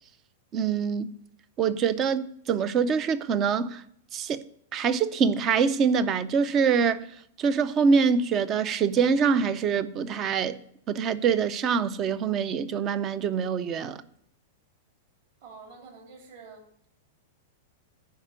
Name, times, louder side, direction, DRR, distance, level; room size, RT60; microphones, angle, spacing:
voice 1, 0.5-1.1 1.6-3.8 4.1-4.4 4.7-7.1 7.4-10.6 10.9-14.0, right 6 dB, 20° right, 0.5 m, -24 dB
voice 2, 15.4-16.7, right 4 dB, 45° right, 3.2 m, -47 dB
11.0 x 5.0 x 8.1 m
supercardioid pair, 180°, 0 cm